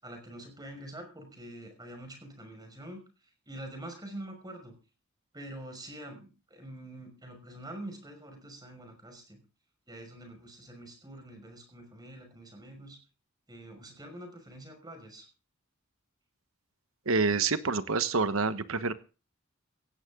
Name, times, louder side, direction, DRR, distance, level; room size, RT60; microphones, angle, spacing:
voice 1, 0.0-3.0 3.5-4.7 5.3-9.4 9.9-13.0 13.5-15.2, right 1 dB, 20° right, 4 dB, 5.7 m, -45 dB
voice 2, 17.1-18.9, right 4 dB, 75° right, 12 dB, 1.2 m, -27 dB
16.5 x 16.0 x 3.8 m, 0.34 s
head